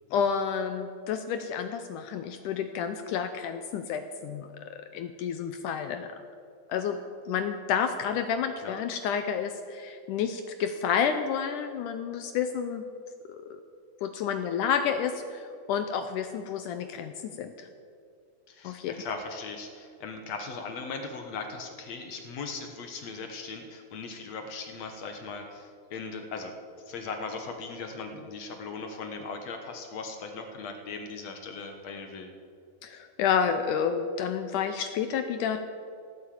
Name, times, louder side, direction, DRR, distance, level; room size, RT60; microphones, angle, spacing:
voice 1, 0.1-6.2 6.7-7.0 7.3-12.8 13.3-13.6 14.0-17.7 18.6-18.9 32.8-35.7, left 7 dB, 80° left, 8 dB, 1.9 m, -30 dB
voice 2, 18.5-26.6 26.9-32.3, left 4 dB, 60° left, 5 dB, 2.0 m, -39 dB
16.5 x 9.2 x 8.5 m, 2.3 s
omnidirectional pair, 4.3 m